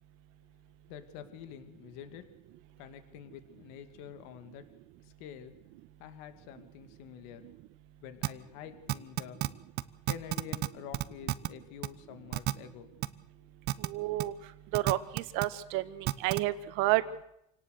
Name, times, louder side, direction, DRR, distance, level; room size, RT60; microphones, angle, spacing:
voice 1, 0.9-2.2 2.8-4.6 5.0-5.5 6.0-7.4 8.0-9.4 10.1-12.9, left 9 dB, 75° left, 8 dB, 2.3 m, -47 dB
sound 1, 8.2-8.3 8.9-9.5 9.8-9.9 10.1-10.7 10.9-11.5 11.8-11.9 12.3-12.5 13.0-13.1 13.7-13.9 14.2-14.3 14.7-15.4 16.1-16.4, right 16 dB, 55° right, 1.0 m, -29 dB
voice 2, 13.9-14.3 14.7-17.2, right 16 dB, 75° right, 12 dB, 1.7 m, -30 dB
27.0 x 18.0 x 6.6 m, 0.79 s
supercardioid pair, 115°, 20 cm